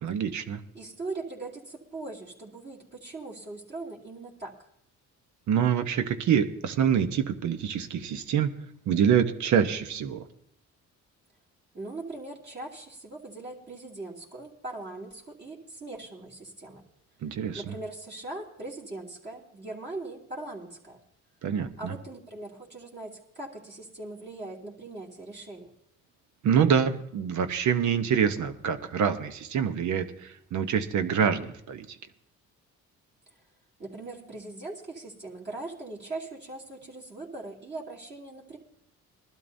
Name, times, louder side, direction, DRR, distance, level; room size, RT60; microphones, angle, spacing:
voice 1, 0.0-0.6 5.5-8.5 8.9-10.2 17.2-17.6 21.4-21.9 26.4-31.9, right 8 dB, 70° right, 9 dB, 0.9 m, -26 dB
voice 2, 0.7-4.5 11.7-16.8 17.5-21.0 21.8-25.7 33.8-38.6, right 2 dB, 35° right, -4 dB, 2.7 m, -40 dB
21.0 x 12.0 x 2.7 m, 0.75 s
cardioid pair, 90°, 30 cm